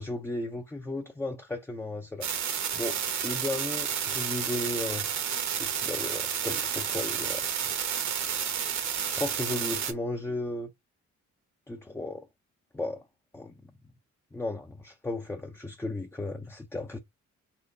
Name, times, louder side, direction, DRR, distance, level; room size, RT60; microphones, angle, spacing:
voice 1, 0.0-2.3 2.7-5.1 5.6-7.4 9.1-10.7 11.7-12.3 12.7-13.0 13.3-13.5 14.3-17.0, left 2 dB, 10° left, 0.5 m, -35 dB
sound 1, 2.2-9.9, right 8 dB, 65° right, 1.0 m, -31 dB
4.3 x 2.2 x 3.9 m
cardioid pair, 90°, 30 cm